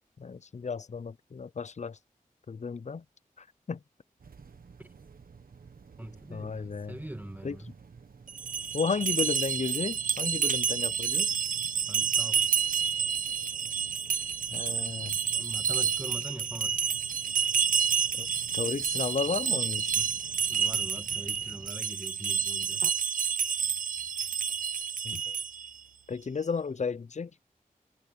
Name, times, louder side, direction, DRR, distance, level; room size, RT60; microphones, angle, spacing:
voice 1, 0.2-2.0 2.5-3.0 3.4-3.8 6.3-7.0 7.4-7.6 8.7-11.3 14.5-15.2 18.2-18.3 18.5-20.1 22.8-22.9 25.0-25.3 26.1-27.3, left 5 dB, 50° left, 0.6 m, -33 dB
sound 1, 4.2-21.7, right 5 dB, 80° right, 1.4 m, -52 dB
voice 2, 6.0-7.7 11.9-12.4 15.3-16.9 20.0-20.1 20.5-22.9, right 1 dB, 10° right, 1.8 m, -43 dB
sound 2, 8.3-25.7, right 7 dB, 65° right, 0.4 m, -29 dB
wide cardioid pair, 55°, 15 cm